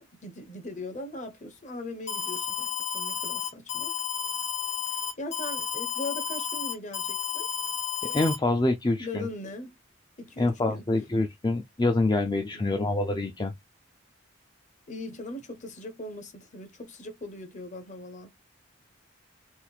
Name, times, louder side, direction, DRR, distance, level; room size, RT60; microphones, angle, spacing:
voice 1, 0.0-3.9 4.9-7.5 9.0-9.7 10.2-10.9 12.5-12.9 14.9-18.4, left 2 dB, 40° left, 1.1 m, -40 dB
Alarm, 2.1-8.4, left 9 dB, 65° left, 1.3 m, -32 dB
voice 2, 8.0-9.3 10.4-13.5, left 2 dB, 20° left, 0.5 m, -26 dB
4.3 x 2.6 x 4.1 m
head